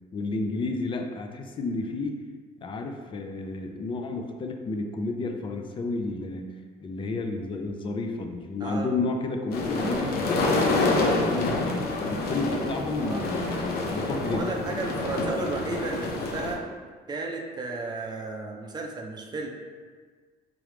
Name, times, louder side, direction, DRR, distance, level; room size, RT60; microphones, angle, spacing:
voice 1, 0.1-2.2 2.6-6.4 6.8-11.6 12.1-14.6, left 3 dB, 30° left, 4 dB, 0.4 m, -31 dB
sound 1, 9.5-16.5, left 2 dB, 65° left, 0.7 m, -27 dB
voice 2, 14.3-16.6 17.1-19.5, right 3 dB, 25° right, 0 dB, 0.6 m, -33 dB
3.7 x 3.1 x 3.3 m, 1.5 s
cardioid pair, 110°, 17 cm